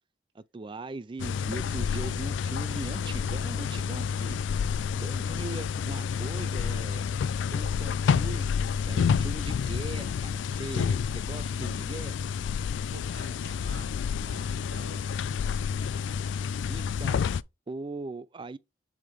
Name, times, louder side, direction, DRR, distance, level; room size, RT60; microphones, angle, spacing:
voice 1, 0.3-4.4 5.0-7.0 7.5-12.3 16.7-17.2 17.7-18.6, right 3 dB, 25° right, 0.4 m, -40 dB
sound 1, 1.2-17.4, left 6 dB, 85° left, 0.3 m, -29 dB
voice 2, 12.9-15.1, right 3 dB, 70° right, 1.1 m, -49 dB
7.6 x 3.6 x 3.6 m
head